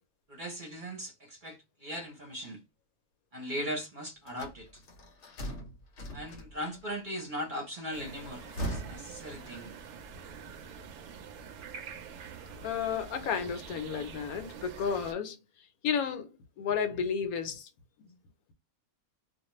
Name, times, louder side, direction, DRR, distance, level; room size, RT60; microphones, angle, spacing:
voice 1, 0.3-2.6 3.3-4.8 6.1-8.4 8.7-9.7, equal, 45° right, 0.8 m, -39 dB
sound 1, 4.3-6.8 8.2-10.0, right 1 dB, 65° left, 0.9 m, -40 dB
sound 2, 7.9-15.1, right 6 dB, 70° right, 0.9 m, -46 dB
voice 2, 12.6-15.4 15.8-16.3 16.6-17.7, left 7 dB, 80° left, 1.1 m, -32 dB
2.5 x 2.2 x 2.9 m
omnidirectional pair, 1.5 m